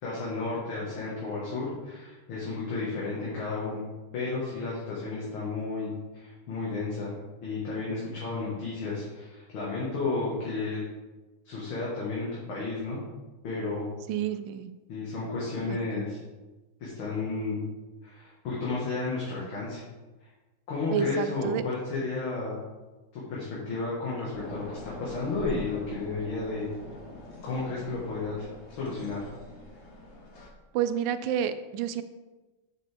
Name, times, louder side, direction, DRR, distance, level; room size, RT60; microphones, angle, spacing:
voice 1, 0.0-3.9 4.1-5.9 6.2-10.8 11.5-13.0 13.4-13.9 14.9-16.2 16.8-17.6 18.0-19.8 20.2-20.3 20.7-22.6 23.1-26.7 27.4-29.3, left 3 dB, 65° left, -6 dB, 2.4 m, -32 dB
voice 2, 14.1-14.7 15.7-16.1 20.9-21.6 30.7-32.0, right 9 dB, 75° right, 11 dB, 1.1 m, -30 dB
sound 1, 24.3-30.5, left 1 dB, 40° left, 1.1 m, -44 dB
8.4 x 7.3 x 3.5 m, 1.2 s
omnidirectional pair, 2.4 m